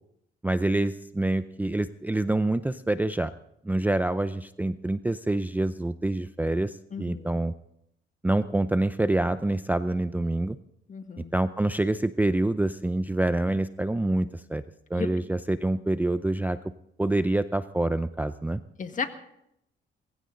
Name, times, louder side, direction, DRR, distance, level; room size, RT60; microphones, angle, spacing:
voice 1, 0.4-3.3 3.6-7.5 8.2-10.6 11.3-14.6 14.9-16.6 17.0-18.6, right 2 dB, 10° right, 12 dB, 0.5 m, -26 dB
voice 2, 6.9-7.4 10.9-11.3 14.9-15.1 18.8-19.1, left 6 dB, 40° left, 7 dB, 1.8 m, -34 dB
20.5 x 16.0 x 3.9 m, 0.77 s
cardioid pair, 90°, 20 cm